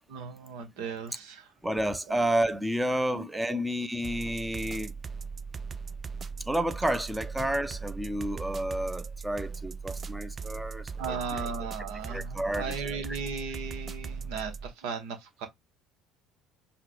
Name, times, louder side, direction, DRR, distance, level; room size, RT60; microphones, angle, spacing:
voice 1, 0.1-1.5 2.1-2.2 3.1-3.6 11.0-15.5, right 5 dB, 65° right, 1.1 m, -37 dB
voice 2, 1.6-4.9 6.5-11.5 12.1-12.9, right 1 dB, 10° right, 0.7 m, -30 dB
sound 1, 4.0-14.7, right 5 dB, 35° right, 0.4 m, -39 dB
5.6 x 2.4 x 3.3 m
figure-of-eight pair, 60°, 0 cm